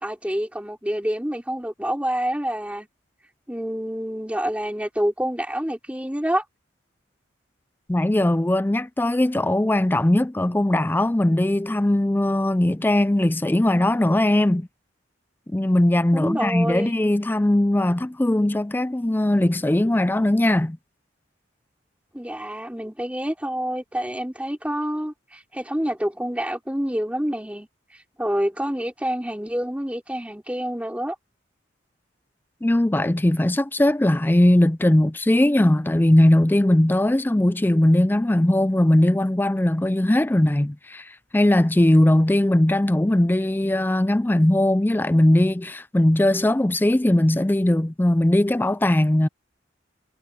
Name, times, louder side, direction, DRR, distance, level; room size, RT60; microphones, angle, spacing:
voice 1, 0.0-2.9 3.5-6.4 16.1-16.9 22.1-27.7 28.2-31.2, equal, 5° right, 3.3 m, -27 dB
voice 2, 7.9-14.7 15.5-20.8 32.6-41.0 41.3-49.3, left 1 dB, 10° left, 0.4 m, -19 dB
head